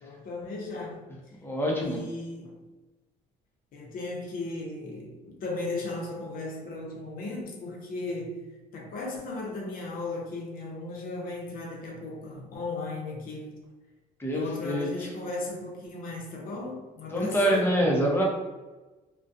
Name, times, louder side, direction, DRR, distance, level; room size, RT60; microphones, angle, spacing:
voice 1, 0.0-1.0 1.8-2.5 3.7-8.4 8.7-13.5 14.3-17.9, left 2 dB, 60° left, 0 dB, 0.7 m, -36 dB
voice 2, 1.4-2.0 14.2-14.9 17.1-18.2, equal, 15° left, -3 dB, 0.7 m, -25 dB
2.4 x 2.2 x 2.6 m, 1.2 s
cardioid pair, 110°, 17 cm